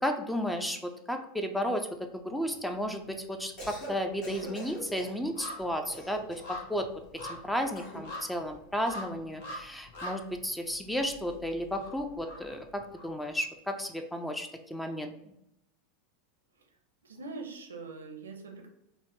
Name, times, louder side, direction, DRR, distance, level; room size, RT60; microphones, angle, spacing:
voice 1, 0.0-1.9 2.1-6.9 7.3-15.3, equal, 5° left, 5 dB, 0.4 m, -33 dB
sound 1, 2.4-3.2 3.5-13.4 13.8-13.9, left 1 dB, 65° left, 0.8 m, -45 dB
Cough, 3.6-4.0 4.2-5.2 5.9-6.6 7.7-8.1, equal, 50° left, 1.3 m, -43 dB
voice 2, 17.0-18.7, right 3 dB, 80° right, 3 dB, 0.6 m, -43 dB
4.0 x 2.0 x 3.0 m, 0.83 s
hypercardioid pair, 85°, 0 cm